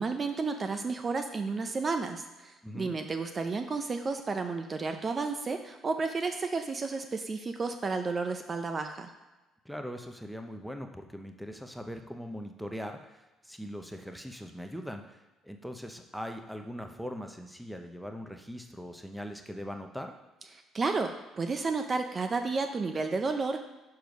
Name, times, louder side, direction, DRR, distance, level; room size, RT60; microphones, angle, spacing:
voice 1, 0.0-9.1 20.7-23.6, right 4 dB, 35° right, 6 dB, 0.6 m, -32 dB
voice 2, 2.6-3.0 9.6-20.1, equal, ahead, 5 dB, 0.7 m, -41 dB
6.7 x 4.6 x 5.2 m, 1.1 s
supercardioid pair, 80°, 0 cm